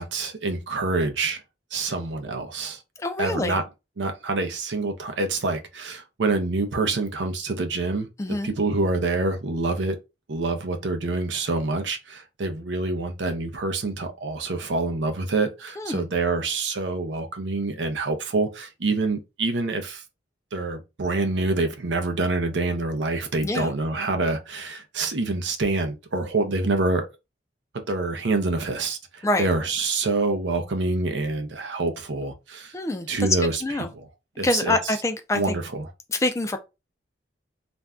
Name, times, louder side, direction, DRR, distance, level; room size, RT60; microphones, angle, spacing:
voice 1, 0.0-1.4 1.7-2.8 3.2-3.6 4.0-8.1 8.4-10.0 10.3-20.0 20.5-27.0 27.7-32.7 33.1-33.6 33.9-34.1 34.4-34.9 35.3-35.8, right 3 dB, 85° right, 0.6 m, -26 dB
voice 2, 3.0-3.6 8.2-8.5 15.8-16.1 23.4-23.7 29.2-29.5 32.7-33.1 33.6-33.9 34.4-35.6 36.1-36.6, left 2 dB, 15° left, 0.3 m, -25 dB
2.5 x 2.2 x 3.4 m
head